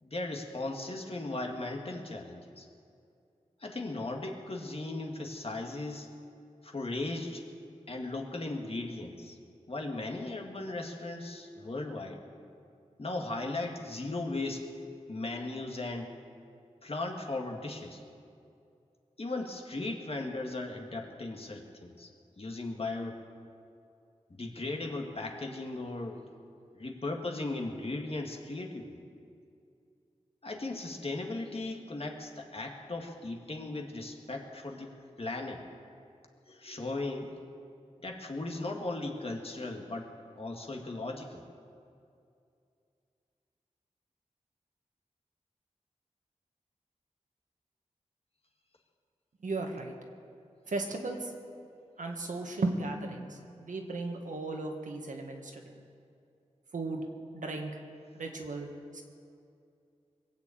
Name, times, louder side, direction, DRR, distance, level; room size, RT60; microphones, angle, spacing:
voice 1, 0.0-2.7 3.6-6.1 6.6-7.4 7.9-9.4 9.7-12.2 13.0-14.7 15.1-16.1 16.8-18.0 19.2-22.1 22.4-23.2 24.3-26.2 26.7-29.0 30.4-35.6 36.5-37.4 38.0-40.1 40.4-41.4, left 2 dB, 50° left, 2 dB, 1.8 m, -37 dB
voice 2, 49.4-49.9 50.7-51.3 52.0-55.6 56.7-57.1 57.3-57.7 58.1-59.0, right 2 dB, 90° right, 2 dB, 1.6 m, -35 dB
21.5 x 7.1 x 8.6 m, 2.5 s
wide cardioid pair, 60°, 13 cm